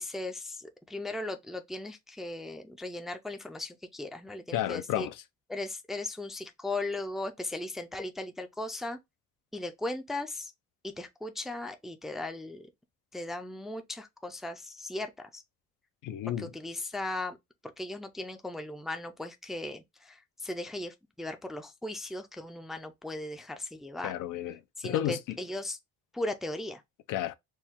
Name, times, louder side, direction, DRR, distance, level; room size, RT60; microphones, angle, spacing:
voice 1, 0.0-5.1 5.5-9.0 9.5-10.5 10.8-12.7 13.1-15.4 16.4-17.4 17.8-24.1 24.8-25.8 26.1-26.8, left 2 dB, ahead, 0.3 m, -37 dB
voice 2, 4.5-5.1 16.0-16.5 24.0-25.2 27.1-27.3, left 12 dB, 90° left, 0.6 m, -32 dB
4.4 x 2.2 x 3.5 m
cardioid pair, 155°, 31 cm